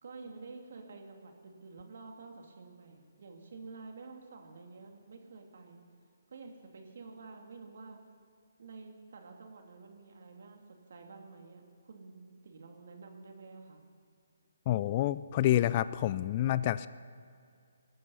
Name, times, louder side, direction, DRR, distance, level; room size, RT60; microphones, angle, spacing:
voice 1, 0.0-5.8 6.3-8.0 8.6-13.8, right 4 dB, 60° right, 3 dB, 2.6 m, -50 dB
voice 2, 14.7-16.9, left 13 dB, 35° left, 16 dB, 0.4 m, -28 dB
20.5 x 12.0 x 5.6 m, 2.3 s
figure-of-eight pair, 140°, 0 cm